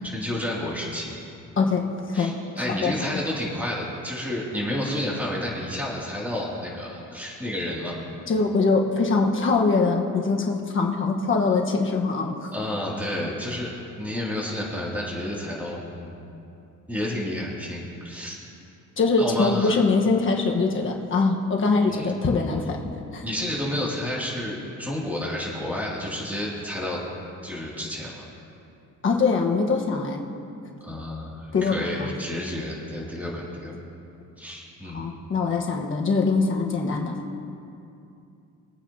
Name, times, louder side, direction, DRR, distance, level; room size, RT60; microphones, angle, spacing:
voice 1, 0.0-1.2 2.1-8.0 12.5-16.1 16.9-18.4 19.2-19.8 21.9-22.1 23.2-27.0 27.4-28.2 30.8-33.8 34.4-35.0, left 1 dB, 5° right, -5 dB, 2.6 m, -30 dB
voice 2, 1.6-3.2 8.3-12.5 19.0-22.8 23.1-23.2 29.0-30.2 31.5-32.1 34.9-37.2, left 4 dB, 40° left, 0 dB, 1.3 m, -23 dB
23.5 x 9.1 x 2.9 m, 2.6 s
cardioid pair, 135°, 30 cm